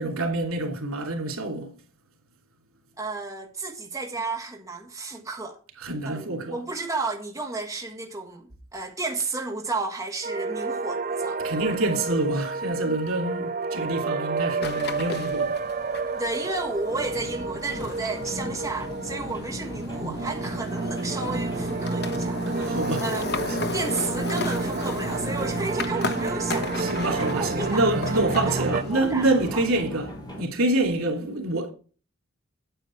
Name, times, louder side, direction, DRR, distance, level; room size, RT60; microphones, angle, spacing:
voice 1, 0.0-1.7 5.8-6.6 11.4-15.6 20.0-20.1 22.6-23.0 26.8-31.7, right 2 dB, 90° right, 2.8 m, -26 dB
voice 2, 3.0-5.6 6.0-11.4 16.1-23.3 23.7-29.3 29.5-29.6, right 3 dB, 15° right, 1.4 m, -32 dB
sound 1, 10.2-28.8, right 3 dB, 40° right, 0.5 m, -30 dB
sound 2, 14.6-29.8, left 3 dB, 50° left, 1.0 m, -36 dB
sound 3, 16.9-30.4, left 1 dB, 20° left, 3.8 m, -38 dB
9.0 x 8.3 x 4.5 m
head